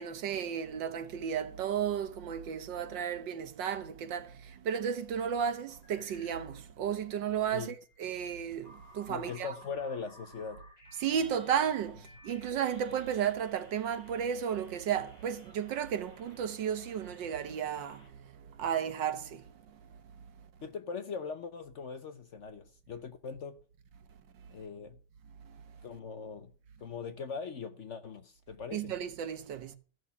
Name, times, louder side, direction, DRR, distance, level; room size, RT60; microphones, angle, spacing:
voice 1, 0.0-9.6 11.0-19.9 25.5-25.6 28.7-29.8, right 8 dB, 85° right, 1.8 m, -34 dB
sound 1, 5.7-6.6 7.5-18.1, equal, 20° left, 5.8 m, -58 dB
voice 2, 9.1-10.6 20.6-23.6 24.5-25.0 25.8-26.5 26.8-28.9, left 5 dB, 55° left, 0.9 m, -40 dB
14.0 x 6.3 x 6.9 m
omnidirectional pair, 1.9 m